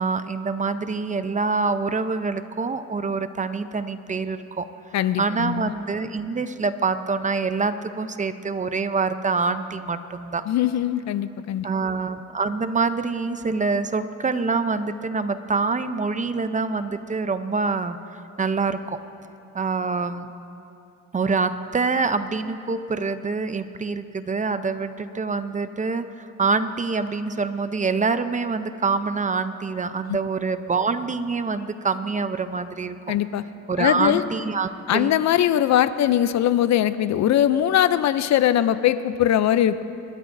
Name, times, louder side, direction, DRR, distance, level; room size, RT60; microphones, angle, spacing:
voice 1, 0.0-4.7 5.2-10.4 11.6-18.0 18.4-19.0 19.5-20.3 21.1-33.0 33.7-35.1, right 4 dB, 25° right, 11 dB, 0.6 m, -25 dB
voice 2, 4.9-5.7 10.5-11.7 30.1-30.2 33.1-33.4 33.8-34.2 34.9-39.8, left 11 dB, 65° left, 14 dB, 0.5 m, -21 dB
27.0 x 13.0 x 2.6 m, 2.8 s
cardioid pair, 90°, 30 cm